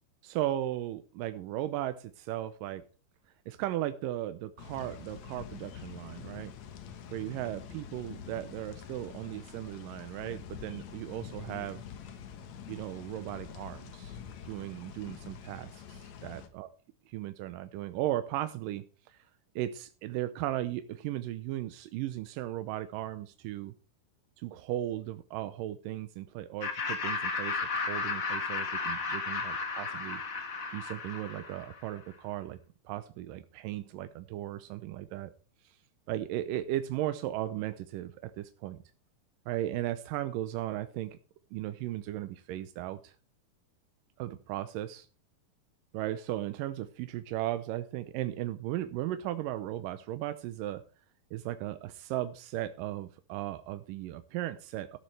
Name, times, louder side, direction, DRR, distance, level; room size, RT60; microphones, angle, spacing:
voice 1, 0.2-2.8 3.5-6.5 7.1-11.8 12.7-14.2 14.5-16.7 17.1-19.2 19.6-23.7 24.4-30.2 30.7-32.6 32.9-35.3 35.6-35.8 36.1-38.8 39.5-41.2 41.5-43.1 44.2-45.1 45.9-50.8 51.3-55.0, right 13 dB, 90° right, 10 dB, 2.4 m, -36 dB
sound 1, 4.6-16.5, left 7 dB, 65° left, 2.3 m, -46 dB
Laughter, 26.6-31.9, left 4 dB, 40° left, 1.1 m, -34 dB
13.5 x 12.0 x 3.3 m, 0.36 s
omnidirectional pair, 3.8 m